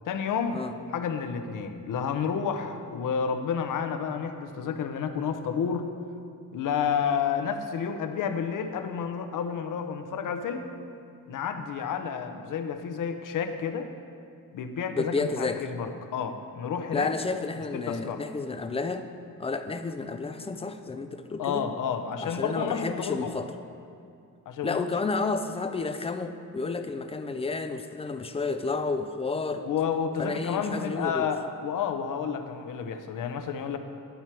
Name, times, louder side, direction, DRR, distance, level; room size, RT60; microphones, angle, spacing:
voice 1, 0.0-0.7 0.9-5.9 6.5-10.7 11.3-13.9 14.5-17.1 17.7-18.2 21.4-23.3 24.5-24.8 29.6-33.8, left 7 dB, 60° left, 7 dB, 0.7 m, -30 dB
voice 2, 14.9-15.6 16.9-19.1 19.4-21.7 22.2-23.5 24.6-29.7 30.2-31.3, left 4 dB, 20° left, 9 dB, 0.3 m, -31 dB
11.5 x 4.5 x 4.5 m, 2.4 s
cardioid pair, 100°, 36 cm